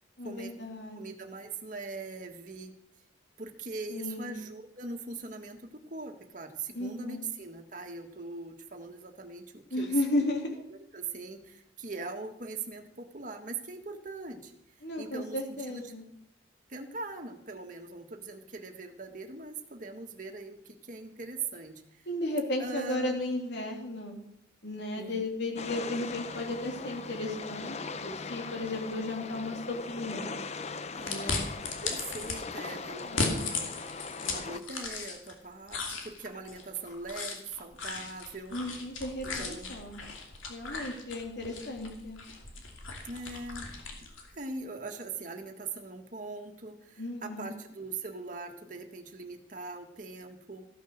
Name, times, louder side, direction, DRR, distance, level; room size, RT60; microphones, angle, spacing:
voice 1, 0.2-1.0 3.9-4.3 6.7-7.2 9.7-10.5 14.8-16.0 22.1-24.2 24.6-30.3 31.1-31.5 33.0-33.4 38.5-40.0 40.5-42.2 47.0-47.5, left 1 dB, 60° left, 2 dB, 3.2 m, -34 dB
voice 2, 0.9-2.7 3.4-10.3 10.7-14.5 15.0-15.4 15.7-15.9 16.7-22.0 22.6-23.2 25.0-25.3 30.9-33.8 34.2-38.6 39.2-39.7 43.0-43.7 44.0-44.1 44.3-50.7, right 3 dB, 40° right, 3 dB, 1.7 m, -41 dB
sound 1, 25.6-34.6, left 4 dB, 35° left, 0.6 m, -40 dB
sound 2, 31.1-32.4 33.0-35.3 35.7-44.3, left 4 dB, 85° left, 2.7 m, -37 dB
15.5 x 9.4 x 6.5 m, 0.75 s
head